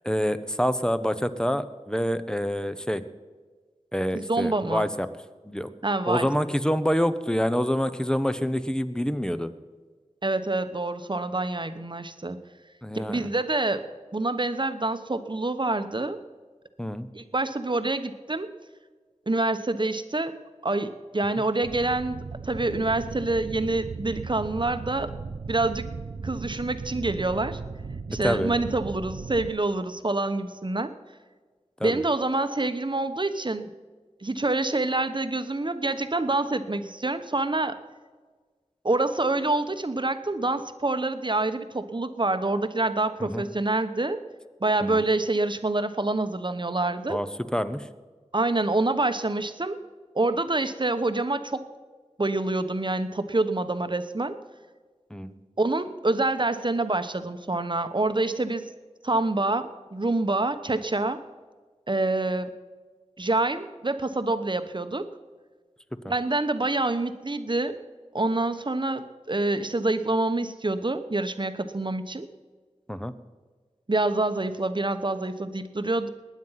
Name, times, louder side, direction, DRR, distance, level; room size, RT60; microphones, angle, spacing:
voice 1, 0.0-3.0 3.9-5.1 5.4-5.7 6.1-9.5 12.8-13.3 16.8-17.1 28.2-28.5 31.8-32.0 43.2-43.4 44.8-45.0 47.1-47.3 47.5-47.8 55.1-55.4 72.9-73.1, equal, 5° left, 12 dB, 0.9 m, -27 dB
voice 2, 4.1-4.9 5.8-6.3 10.2-12.4 12.9-13.9 14.1-16.2 17.1-18.5 19.3-20.3 20.6-25.1 25.5-25.9 26.2-27.6 28.1-30.9 31.8-33.7 34.2-37.8 38.8-44.2 44.6-47.2 48.3-49.8 50.1-51.6 52.2-54.3 55.6-58.6 59.0-61.2 61.9-62.5 63.2-65.1 66.1-67.8 68.1-72.3 73.9-76.1, right 2 dB, 40° right, 9 dB, 1.0 m, -26 dB
sound 1, 21.6-29.5, right 4 dB, 80° right, 0.5 m, -37 dB
20.5 x 9.5 x 5.8 m, 1.4 s
wide cardioid pair, 55°, 12 cm